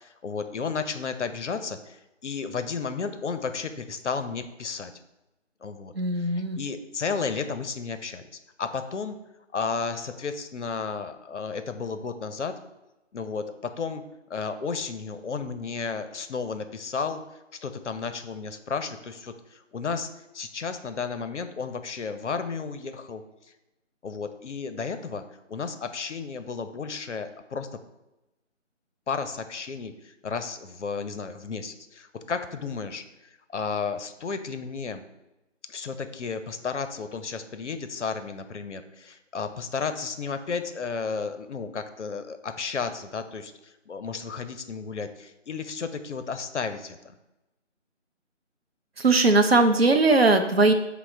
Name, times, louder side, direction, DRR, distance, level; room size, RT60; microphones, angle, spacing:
voice 1, 0.0-4.9 5.6-8.2 8.6-9.2 9.5-12.6 13.1-14.0 14.3-17.2 17.6-23.2 24.0-25.2 25.5-27.7 29.1-33.0 33.5-35.0 35.7-47.1, left 5 dB, 70° left, 9 dB, 0.5 m, -33 dB
voice 2, 5.9-6.6 49.0-50.7, right 3 dB, 55° right, 6 dB, 0.5 m, -19 dB
5.8 x 2.1 x 4.2 m, 0.98 s
figure-of-eight pair, 160°, 38 cm